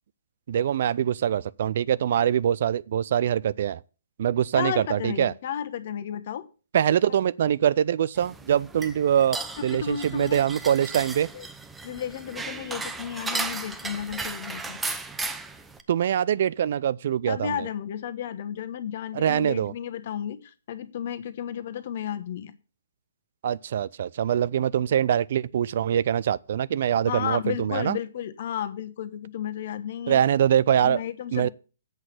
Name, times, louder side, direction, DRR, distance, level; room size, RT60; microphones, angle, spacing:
voice 1, 0.5-3.8 4.2-5.3 6.7-11.3 15.9-17.7 19.1-19.7 23.4-28.0 30.1-31.0 31.3-31.5, right 9 dB, 55° right, 0.4 m, -24 dB
voice 2, 4.5-6.5 7.1-7.2 9.6-10.4 11.3-11.5 11.8-14.8 17.3-22.5 27.1-30.2 30.8-31.5, left 9 dB, 55° left, 1.1 m, -33 dB
sound 1, 8.2-15.8, right 3 dB, 10° right, 0.8 m, -35 dB
8.0 x 5.8 x 8.0 m
figure-of-eight pair, 130°, 0 cm